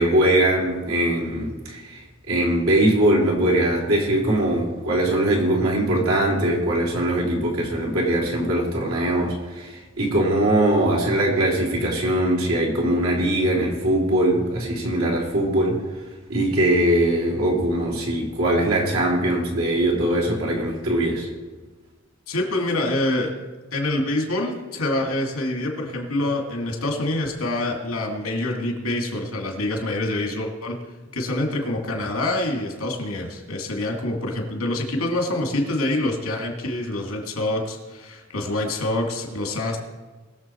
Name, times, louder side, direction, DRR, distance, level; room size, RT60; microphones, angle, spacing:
voice 1, 0.0-15.8 16.3-21.3, right 1 dB, 75° right, -3 dB, 3.6 m, -21 dB
voice 2, 22.3-23.3 23.7-30.8 31.1-39.8, left 1 dB, 70° left, 1 dB, 2.6 m, -26 dB
21.5 x 7.2 x 4.6 m, 1.3 s
head